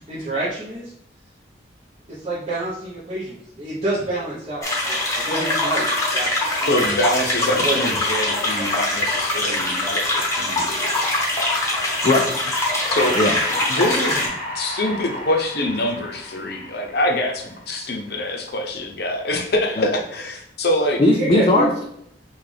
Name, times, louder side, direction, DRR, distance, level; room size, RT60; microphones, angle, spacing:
voice 1, 0.1-0.9 2.1-6.8 7.1-7.2 7.6-8.1 8.6-8.7 21.0-21.7, right 2 dB, 35° right, -10 dB, 1.0 m, -27 dB
sound 1, 4.6-14.3, left 1 dB, 15° left, 0.9 m, -23 dB
voice 2, 6.7-11.1 13.0-13.2 13.7-21.0, left 1 dB, 55° left, 2 dB, 0.7 m, -25 dB
voice 3, 12.0-12.3 13.2-13.4 19.8-19.9 21.0-21.8, left 2 dB, 30° left, 1 dB, 0.4 m, -18 dB
Breathing, 12.9-17.8, equal, 15° right, 1.4 m, -32 dB
5.9 x 2.4 x 3.3 m, 0.74 s
head